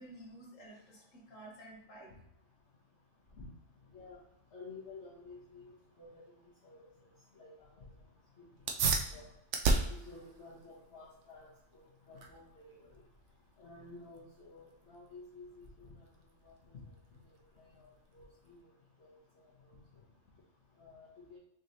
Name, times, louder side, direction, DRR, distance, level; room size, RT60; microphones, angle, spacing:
voice 1, 0.0-2.2, right 1 dB, 80° left, -2 dB, 1.6 m, -52 dB
voice 2, 4.5-6.2 6.6-6.8 7.3-7.9 8.4-8.5 9.1-9.3 9.9-11.5 11.7-12.9 13.6-15.9 16.4-16.8 17.6-18.6 19.0-19.1 20.8-21.4, left 3 dB, 60° left, -9 dB, 1.4 m, -52 dB
soda can opening, 8.5-18.6, right 4 dB, 70° right, 0.9 m, -37 dB
5.2 x 3.1 x 2.7 m, 0.79 s
omnidirectional pair, 1.3 m